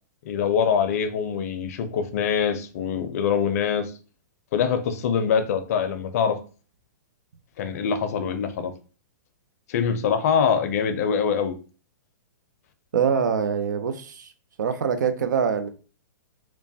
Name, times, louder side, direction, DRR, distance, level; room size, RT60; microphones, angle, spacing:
voice 1, 0.3-3.9 4.5-6.4 7.6-8.7 9.7-11.6, left 7 dB, 55° left, 0.5 m, -24 dB
voice 2, 12.9-14.3 14.6-15.7, right 7 dB, 75° right, 0.5 m, -24 dB
3.0 x 2.1 x 2.7 m
hypercardioid pair, 130°, 10 cm